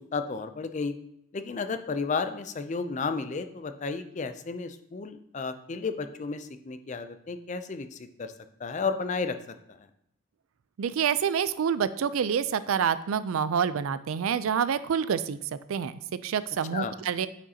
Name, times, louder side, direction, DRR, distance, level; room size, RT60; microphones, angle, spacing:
voice 1, 0.1-1.0 1.3-8.3 8.6-9.4 9.7-9.8 16.7-16.9, left 4 dB, 35° left, 9 dB, 0.4 m, -32 dB
voice 2, 10.8-15.4 15.7-17.3, right 7 dB, 80° right, 15 dB, 0.4 m, -27 dB
8.8 x 5.0 x 2.8 m, 0.77 s
head